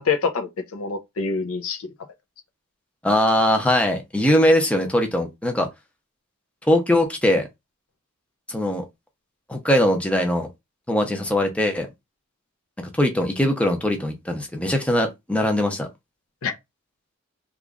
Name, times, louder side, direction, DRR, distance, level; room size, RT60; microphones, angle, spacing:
voice 1, 0.0-1.9 16.4-16.5, left 5 dB, 80° left, 0.6 m, -26 dB
voice 2, 3.0-5.7 6.7-7.5 8.5-8.8 9.5-10.5 10.9-11.9 12.8-15.9, left 1 dB, 5° left, 0.6 m, -21 dB
3.0 x 2.4 x 3.6 m
head